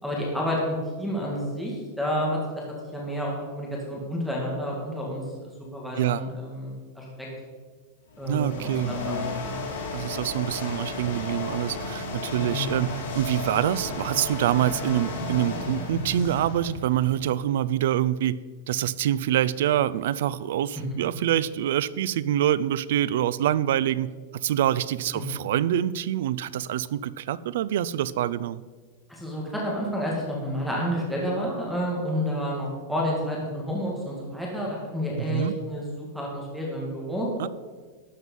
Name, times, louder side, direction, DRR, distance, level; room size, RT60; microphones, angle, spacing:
voice 1, 0.0-2.6 2.9-7.3 8.2-9.6 12.4-12.7 29.1-37.3, equal, ahead, -3 dB, 1.8 m, -30 dB
sound 1, 8.1-17.3, left 3 dB, 75° left, 3.2 m, -34 dB
voice 2, 8.3-8.9 9.9-18.4 18.7-28.6 35.2-35.6 37.4-37.5, right 11 dB, 60° right, 18 dB, 0.4 m, -26 dB
12.5 x 7.5 x 5.4 m, 1.5 s
supercardioid pair, 175°, 0 cm